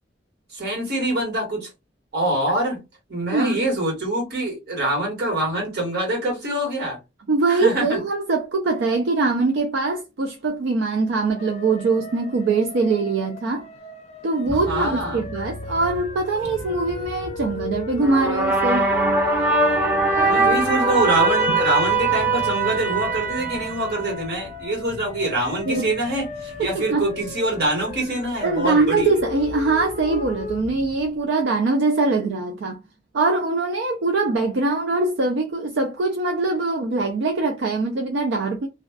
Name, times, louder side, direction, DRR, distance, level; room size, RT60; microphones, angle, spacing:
voice 1, 0.5-1.7 2.1-2.8 3.1-7.0 7.5-8.0 14.6-15.2 20.2-29.1, right 1 dB, 65° right, 1.5 m, -25 dB
voice 2, 3.3-3.6 7.3-13.7 14.2-18.9 20.1-20.6 25.7-25.9 26.6-27.1 28.4-32.8 33.1-38.7, right 3 dB, 80° right, 0.4 m, -22 dB
sound 1, 11.4-30.6, left 3 dB, 40° left, 0.4 m, -37 dB
sound 2, 14.5-31.2, left 1 dB, 45° right, 1.0 m, -40 dB
sound 3, 18.0-24.4, right 3 dB, 10° right, 0.6 m, -21 dB
2.4 x 2.3 x 2.2 m
head